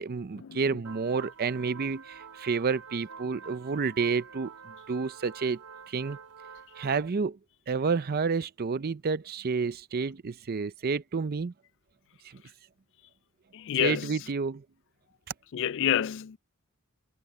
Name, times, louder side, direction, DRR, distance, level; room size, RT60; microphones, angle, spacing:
voice 1, 0.0-4.5 4.9-5.6 5.9-6.2 6.8-7.4 7.7-11.5 13.7-14.6, right 5 dB, 45° right, 0.5 m, -30 dB
sound 1, 0.8-7.1, right 5 dB, 90° right, 3.0 m, -48 dB
voice 2, 13.5-14.2 15.5-16.4, left 10 dB, 55° left, 0.4 m, -28 dB
head